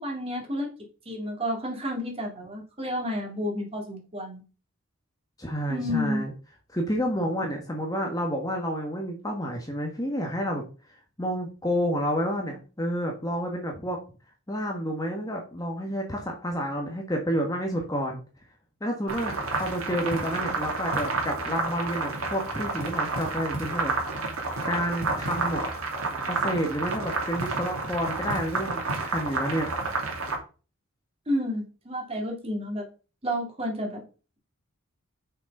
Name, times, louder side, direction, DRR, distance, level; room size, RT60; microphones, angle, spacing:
voice 1, 0.0-0.7 1.1-4.4 5.7-6.2 31.3-32.9 33.2-34.0, equal, 25° right, 1 dB, 2.5 m, -30 dB
voice 2, 5.4-6.3 6.7-10.6 11.2-14.0 14.5-18.2 18.8-23.9 24.2-25.6 26.3-29.7, equal, 15° left, 1 dB, 1.4 m, -30 dB
sound 1, 19.1-30.4, right 3 dB, 80° right, 2.8 m, -30 dB
6.6 x 6.4 x 5.3 m, 0.35 s
head